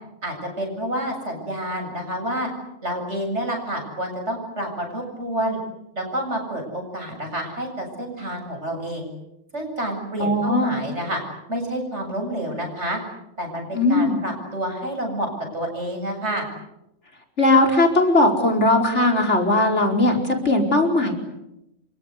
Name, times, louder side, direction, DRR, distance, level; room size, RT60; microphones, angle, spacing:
voice 1, 0.2-2.5 2.8-5.6 6.0-9.1 9.5-11.2 11.5-13.0 13.4-16.5, right 1 dB, 60° right, 3 dB, 8.2 m, -29 dB
voice 2, 10.2-10.7 13.7-14.2 17.4-21.1, left 2 dB, 60° left, 3 dB, 4.9 m, -18 dB
28.5 x 25.0 x 8.3 m, 0.88 s
omnidirectional pair, 1.3 m